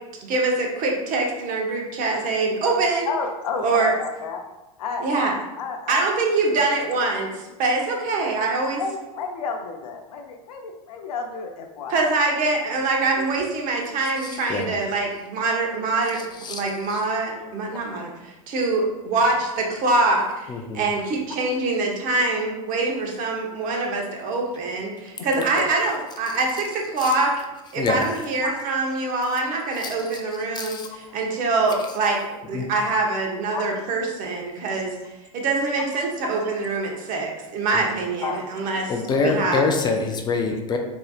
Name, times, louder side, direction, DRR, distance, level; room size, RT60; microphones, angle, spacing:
voice 1, 0.2-3.1 3.6-3.9 5.0-5.3 5.9-8.8 11.9-27.4 27.7-38.9 39.2-39.6, right 3 dB, 45° right, 0 dB, 0.9 m, -24 dB
voice 2, 3.1-4.4 4.8-5.3 5.6-6.0 8.8-12.1 21.3-21.4 25.4-25.5 28.4-28.5 33.5-33.7 38.2-38.6 39.1-39.3, left 5 dB, 80° left, 4 dB, 0.6 m, -31 dB
voice 3, 14.2-14.7 16.1-16.6 16.9-17.0 20.5-20.9 27.0-27.1 27.8-28.0 29.8-30.2 30.5-30.9 32.5-32.7 37.7-37.8 38.9-40.8, left 4 dB, 25° left, 3 dB, 0.4 m, -26 dB
4.1 x 2.7 x 2.4 m, 1.0 s
hypercardioid pair, 105°, 19 cm